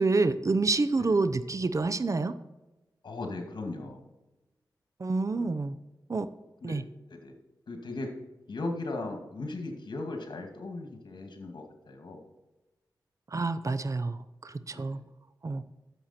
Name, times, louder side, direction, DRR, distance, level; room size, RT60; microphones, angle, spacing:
voice 1, 0.0-2.3 5.0-5.8 6.1-6.3 6.6-6.8 13.3-15.0 15.4-15.6, right 3 dB, 45° right, 12 dB, 0.6 m, -28 dB
voice 2, 3.0-4.0 5.3-5.6 6.6-6.8 7.1-7.3 7.7-8.1 8.5-12.2 14.7-15.0, left 2 dB, 70° left, 3 dB, 2.2 m, -38 dB
11.0 x 7.3 x 4.4 m, 1.1 s
cardioid pair, 65°, 8 cm